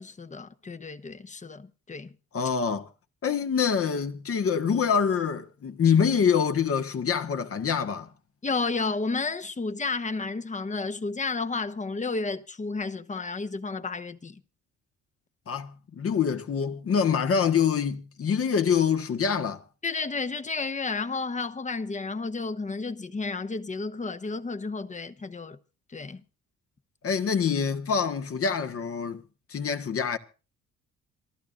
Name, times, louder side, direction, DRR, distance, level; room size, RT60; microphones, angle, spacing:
voice 1, 0.0-2.1 8.4-14.4 19.8-25.6 25.9-26.2, left 4 dB, 25° left, 1.1 m, -32 dB
voice 2, 2.3-2.9 3.2-8.1 15.5-19.6 27.0-29.2 29.5-30.2, left 7 dB, 50° left, 1.5 m, -25 dB
27.0 x 14.0 x 2.6 m
cardioid pair, 90°, 30 cm